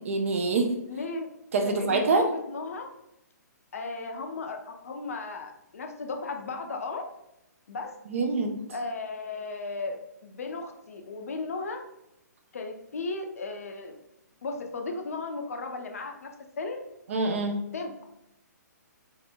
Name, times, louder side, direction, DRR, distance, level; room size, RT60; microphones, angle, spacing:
voice 1, 0.1-0.7 1.5-2.2 8.1-8.5 17.1-17.5, right 3 dB, 45° right, 5 dB, 0.5 m, -25 dB
voice 2, 0.9-1.3 1.6-2.9 3.7-7.1 7.7-8.0 8.7-11.8 12.5-14.0 14.4-16.3 16.6-16.8 17.7-18.0, left 3 dB, 55° left, 4 dB, 0.4 m, -35 dB
3.2 x 2.7 x 2.2 m, 0.84 s
figure-of-eight pair, 125°, 10 cm